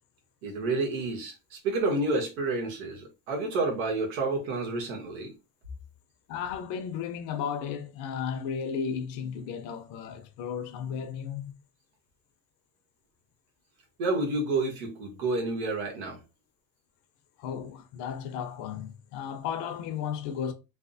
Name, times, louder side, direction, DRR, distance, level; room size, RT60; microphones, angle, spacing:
voice 1, 0.4-5.3 14.0-16.2, right 2 dB, 75° right, 1.3 m, -29 dB
voice 2, 6.3-11.5 17.4-20.5, left 7 dB, 60° left, 0.7 m, -34 dB
3.2 x 2.1 x 2.6 m
supercardioid pair, 135°, 33 cm